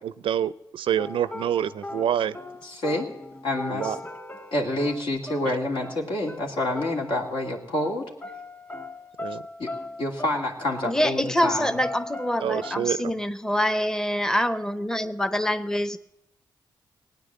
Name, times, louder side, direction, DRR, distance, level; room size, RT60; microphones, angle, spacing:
voice 1, 0.0-2.4 3.7-4.0 5.5-5.6 9.2-9.4 12.4-13.0, right 9 dB, 75° right, 17 dB, 0.5 m, -27 dB
sound 1, 1.0-7.5 7.7-7.9 8.2-12.9, left 2 dB, 25° left, 2.6 m, -39 dB
voice 2, 2.6-3.1 3.4-3.9 4.5-8.0 9.6-9.7 10.0-11.8, left 1 dB, 75° left, 0 dB, 2.5 m, -27 dB
voice 3, 10.8-16.0, left 1 dB, 5° left, 12 dB, 0.7 m, -25 dB
17.5 x 9.4 x 7.5 m, 0.92 s
supercardioid pair, 50°, 9 cm